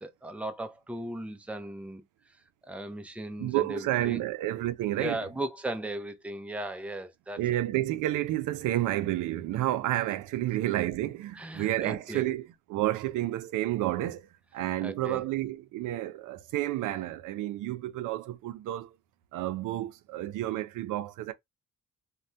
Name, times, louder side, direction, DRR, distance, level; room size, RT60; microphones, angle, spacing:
voice 1, 0.0-2.0 2.7-4.2 5.0-7.6 11.3-12.3 14.8-15.2, right 1 dB, 5° right, 0.5 m, -37 dB
voice 2, 3.4-5.2 7.4-14.3 14.5-18.9 19.3-21.3, right 14 dB, 85° right, 0.5 m, -30 dB
2.6 x 2.2 x 3.3 m
cardioid pair, 90°, 30 cm